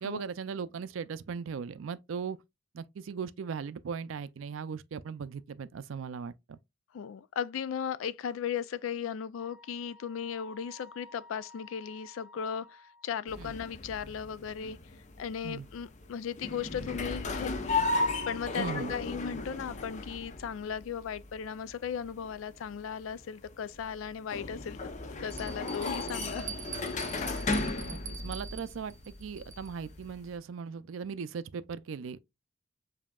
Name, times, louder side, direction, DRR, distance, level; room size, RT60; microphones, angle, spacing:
voice 1, 0.0-2.4 2.7-6.6 13.4-13.5 15.4-15.7 18.6-18.9 27.8-32.2, right 6 dB, 80° right, 0.4 m, -38 dB
voice 2, 6.9-14.8 15.2-24.8 25.2-26.6 26.9-27.1, left 7 dB, 90° left, 0.4 m, -37 dB
Wind instrument woodwind instrument, 9.4-13.2, left 2 dB, 5° right, 0.8 m, -54 dB
sound 1, 13.3-30.3, left 3 dB, 35° left, 0.6 m, -36 dB
Bell, 23.7-23.8 24.5-24.6 25.3-29.9, right 5 dB, 40° right, 0.7 m, -44 dB
7.2 x 2.7 x 2.3 m
head